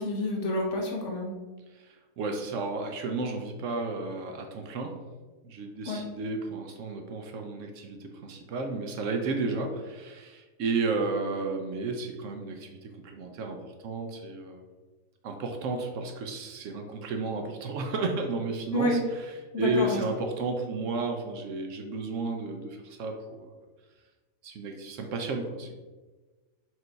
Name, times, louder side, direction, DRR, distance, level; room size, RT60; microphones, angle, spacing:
voice 1, 0.0-1.3 5.9-6.0 18.7-19.0 19.5-20.0, left 1 dB, 60° left, -1 dB, 1.2 m, -28 dB
voice 2, 1.7-4.9 5.4-14.6 15.2-19.0 19.6-23.5 24.4-25.7, right 3 dB, 70° right, 4 dB, 0.9 m, -32 dB
4.5 x 2.6 x 4.4 m, 1.3 s
omnidirectional pair, 1.5 m